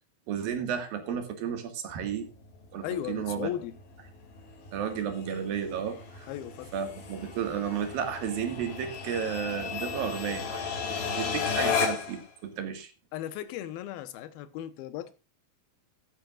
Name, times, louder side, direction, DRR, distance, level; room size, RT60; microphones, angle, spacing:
voice 1, 0.3-2.3 2.7-3.5 4.7-6.3 6.7-12.9, right 8 dB, 75° right, 3.5 m, -33 dB
sound 1, 2.0-12.2, left 6 dB, 70° left, 4.4 m, -35 dB
voice 2, 2.8-3.7 6.3-6.7 13.1-15.1, left 11 dB, 85° left, 2.9 m, -36 dB
15.0 x 13.0 x 2.4 m
omnidirectional pair, 4.2 m